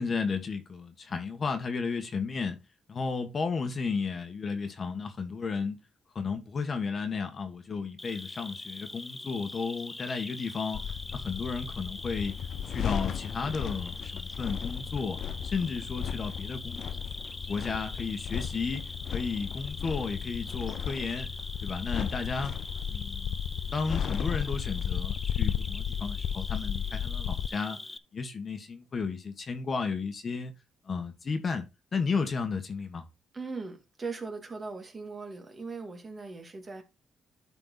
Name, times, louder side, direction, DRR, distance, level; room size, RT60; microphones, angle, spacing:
voice 1, 0.0-2.6 2.9-5.8 6.1-10.8 11.1-12.3 12.7-16.8 17.5-21.3 21.6-22.5 22.9-23.4 23.7-27.8 28.1-30.5 30.9-31.6 31.9-33.0, left 4 dB, 40° left, 1.5 m, -33 dB
Cricket, 8.0-28.0, left 2 dB, 15° left, 0.6 m, -43 dB
sound 1, 10.7-27.5, left 8 dB, 65° left, 0.5 m, -34 dB
voice 2, 33.3-36.8, right 4 dB, 30° right, 2.1 m, -39 dB
11.5 x 4.5 x 4.0 m
cardioid pair, 105°, 0 cm